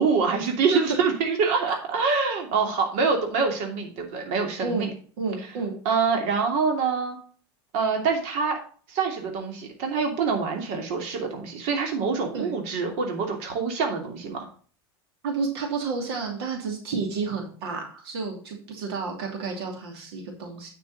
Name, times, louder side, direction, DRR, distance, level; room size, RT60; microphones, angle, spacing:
voice 1, 0.0-4.9 5.8-7.2 7.7-8.6 8.9-14.5, right 5 dB, 65° right, 3 dB, 2.8 m, -25 dB
voice 2, 5.2-5.7 12.3-12.5 15.2-20.7, right 4 dB, 80° right, 2 dB, 2.8 m, -30 dB
10.0 x 6.1 x 4.0 m, 0.43 s
supercardioid pair, 95°, 13 cm